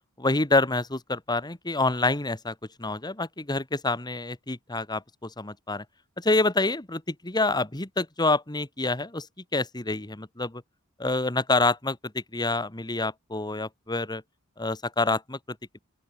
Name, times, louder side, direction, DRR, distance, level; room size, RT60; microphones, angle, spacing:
voice 1, 0.2-5.8 6.2-9.3 9.5-10.6 11.0-14.2 14.6-15.8, left 2 dB, 20° left, 1.7 m, -27 dB
open air
head